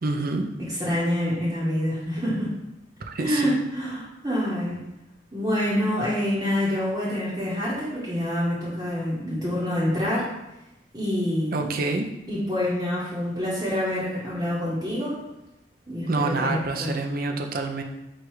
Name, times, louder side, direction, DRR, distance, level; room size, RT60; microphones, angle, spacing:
voice 1, 0.0-0.5 3.1-3.6 11.5-12.1 16.1-17.8, right 3 dB, 50° right, 4 dB, 0.5 m, -27 dB
voice 2, 0.7-2.5 3.2-4.8 5.3-10.3 10.9-11.7 12.3-15.2 15.9-16.9, left 1 dB, 20° right, -9 dB, 0.9 m, -26 dB
4.5 x 2.4 x 4.8 m, 0.93 s
head